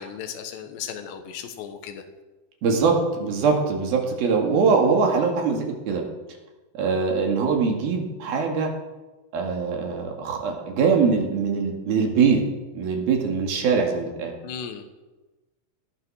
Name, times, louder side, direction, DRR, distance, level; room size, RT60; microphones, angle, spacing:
voice 1, 0.0-2.0 14.4-14.8, left 8 dB, 85° left, 6 dB, 3.5 m, -36 dB
voice 2, 2.6-6.0 6.7-8.7 9.3-12.4 12.8-14.3, right 5 dB, 65° right, 2 dB, 3.9 m, -22 dB
18.5 x 11.5 x 6.4 m, 1.1 s
omnidirectional pair, 4.8 m